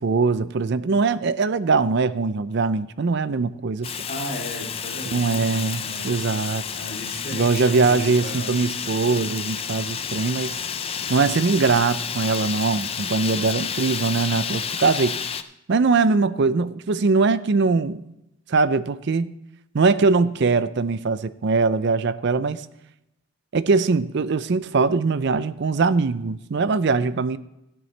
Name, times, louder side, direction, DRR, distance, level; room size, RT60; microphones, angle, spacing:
voice 1, 0.0-3.9 5.1-6.6 7.3-10.6 11.1-15.2 15.7-18.0 18.5-19.3 19.7-22.6 23.5-27.4, right 4 dB, 55° right, 0.5 m, -21 dB
Fire, 3.8-15.4, left 7 dB, 25° left, 0.4 m, -30 dB
voice 2, 4.1-6.1 6.7-8.5, left 1 dB, 45° left, 2.9 m, -35 dB
14.0 x 10.5 x 3.3 m
head